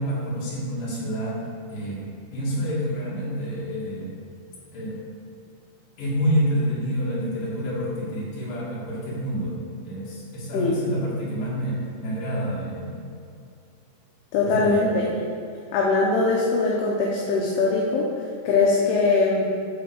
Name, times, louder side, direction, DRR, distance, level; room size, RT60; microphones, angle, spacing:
voice 1, 0.0-2.0 2.3-4.1 4.7-5.0 6.0-9.6 9.8-13.0 14.4-14.8, equal, 55° left, -7 dB, 4.0 m, -28 dB
voice 2, 10.5-10.8 14.3-15.3 15.7-19.5, left 3 dB, 75° left, -3 dB, 2.8 m, -22 dB
11.0 x 4.4 x 6.9 m, 2.4 s
omnidirectional pair, 4.9 m